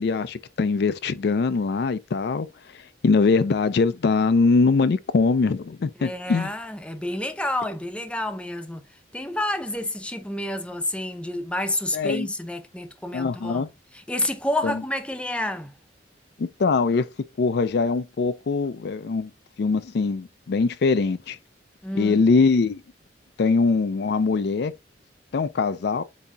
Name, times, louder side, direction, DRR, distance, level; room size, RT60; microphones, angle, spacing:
voice 1, 0.0-2.5 3.0-6.5 11.9-12.3 13.1-13.7 14.6-14.8 16.4-17.0 17.4-19.3 19.6-21.4 21.9-22.8 23.4-24.7 25.3-26.0, left 4 dB, 60° left, 0.4 m, -22 dB
voice 2, 6.0-8.8 9.1-13.7 13.9-15.7 21.8-22.2, left 1 dB, 5° left, 0.6 m, -29 dB
8.0 x 2.8 x 2.3 m
head